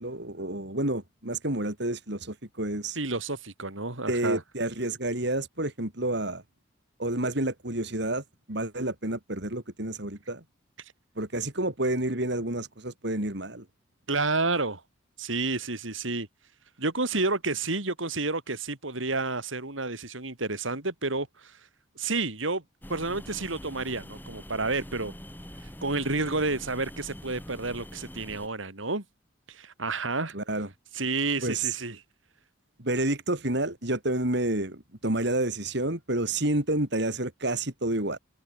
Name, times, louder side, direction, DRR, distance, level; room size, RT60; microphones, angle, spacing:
voice 1, 0.0-3.0 4.1-6.4 7.0-10.4 11.2-13.7 30.3-30.7 31.4-31.7 32.8-38.2, right 1 dB, 55° right, 4.0 m, -29 dB
voice 2, 3.0-4.4 10.8-10.9 14.1-14.8 15.2-16.3 16.8-21.7 22.0-22.6 22.9-25.1 25.8-29.0 29.5-30.4 30.9-32.0, right 3 dB, 75° right, 3.8 m, -30 dB
sound 1, 22.8-28.5, equal, 10° left, 6.8 m, -44 dB
head